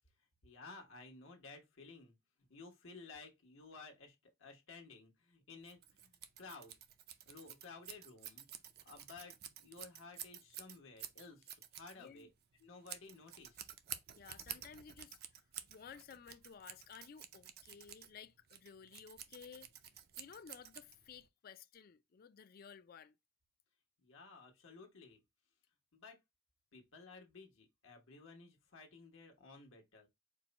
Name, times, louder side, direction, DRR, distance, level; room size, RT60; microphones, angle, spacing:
voice 1, 0.4-2.1 2.5-6.7 7.3-8.5 8.8-9.4 9.6-12.3 12.6-13.7 24.0-25.2 25.9-26.2 26.7-30.1, left 4 dB, 80° left, 1.1 m, -55 dB
Scissors, 5.6-21.3, right 10 dB, 50° right, 0.5 m, -51 dB
voice 2, 12.0-12.3 14.1-15.2 15.7-19.7 20.2-23.2, left 7 dB, 45° left, 0.3 m, -55 dB
4.5 x 2.2 x 3.9 m
head